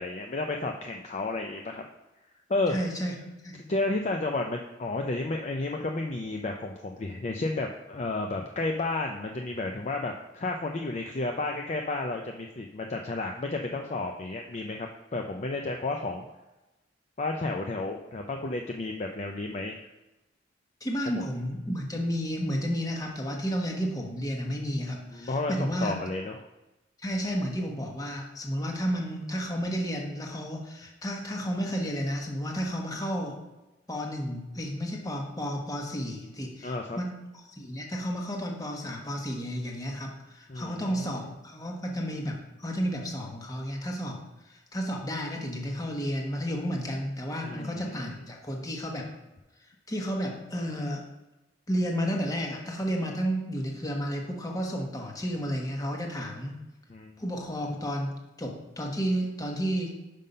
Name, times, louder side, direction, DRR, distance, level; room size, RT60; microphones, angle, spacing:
voice 1, 0.0-1.8 2.5-2.8 3.7-16.2 17.2-19.9 21.1-21.3 25.1-25.5 25.8-26.3 36.6-37.0 40.5-41.3 47.4-48.1 56.9-57.2, left 2 dB, 40° left, 3 dB, 0.5 m, -32 dB
voice 2, 2.7-3.1 3.4-3.6 20.8-25.9 27.0-33.4 33.9-37.1 37.5-44.2 44.5-49.1 49.9-51.0 51.7-56.5 57.2-59.9, equal, 20° left, 1 dB, 1.2 m, -32 dB
5.5 x 5.3 x 5.4 m, 1.0 s
head